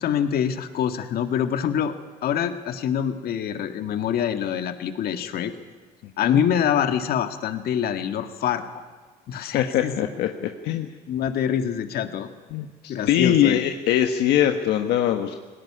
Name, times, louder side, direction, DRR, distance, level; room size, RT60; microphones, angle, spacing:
voice 1, 0.0-2.0 2.2-5.5 6.2-8.9 9.3-9.9 11.1-12.3 12.9-13.7, left 9 dB, 65° left, 7 dB, 1.8 m, -25 dB
voice 2, 9.5-10.9 12.5-15.3, left 10 dB, 80° left, 5 dB, 1.3 m, -22 dB
19.0 x 17.5 x 9.9 m, 1.4 s
cardioid pair, 110°, 17 cm